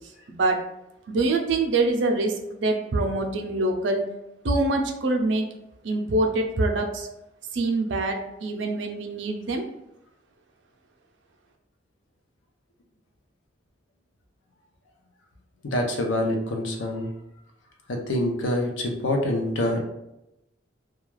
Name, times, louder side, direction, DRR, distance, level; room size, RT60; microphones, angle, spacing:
voice 1, 0.3-0.6 1.1-4.0 4.4-5.5 5.8-7.1 7.5-9.6, right 2 dB, 70° right, 3 dB, 0.5 m, -25 dB
voice 2, 15.6-17.1 17.9-19.8, left 1 dB, 85° left, 2 dB, 0.6 m, -26 dB
2.3 x 2.3 x 3.1 m, 0.86 s
head